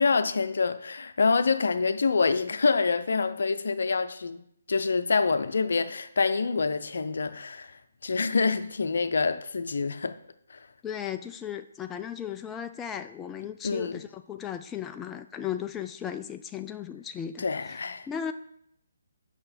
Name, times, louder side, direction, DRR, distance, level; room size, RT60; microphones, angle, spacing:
voice 1, 0.0-4.4 4.7-7.7 8.0-10.2 13.6-14.0 17.4-18.0, left 4 dB, 65° left, 0.6 m, -26 dB
voice 2, 10.8-17.8 18.1-18.3, left 9 dB, 15° left, 0.3 m, -36 dB
8.6 x 5.9 x 4.3 m
figure-of-eight pair, 140°, 0 cm